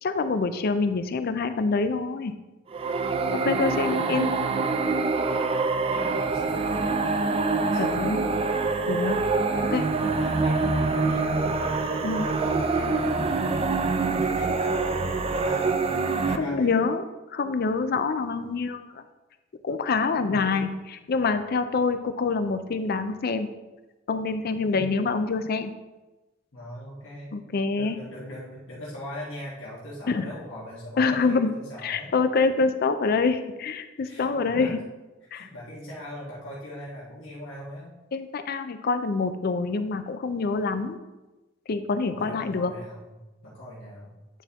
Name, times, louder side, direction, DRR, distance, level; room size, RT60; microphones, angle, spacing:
voice 1, 0.0-2.3 3.3-4.3 7.8-8.2 8.9-9.2 9.7-9.8 12.0-12.3 16.4-17.0 17.3-19.0 19.6-20.7 21.1-23.5 24.1-25.7 27.3-28.0 30.1-30.3 31.0-31.5 31.8-34.8 35.3-35.5 38.1-41.0 41.7-42.7, left 4 dB, 50° left, 10 dB, 0.4 m, -26 dB
sound 1, 2.7-16.4, right 3 dB, 30° right, 0.3 m, -25 dB
voice 2, 3.2-4.3 5.9-7.3 7.7-8.3 9.4-13.4 13.8-15.9 16.2-16.7 20.1-20.7 24.6-24.9 26.5-27.3 27.7-32.1 34.0-34.7 35.2-37.9 42.1-43.1 43.4-44.1, left 1 dB, 85° left, -7 dB, 1.5 m, -40 dB
9.0 x 4.3 x 3.5 m, 1.1 s
head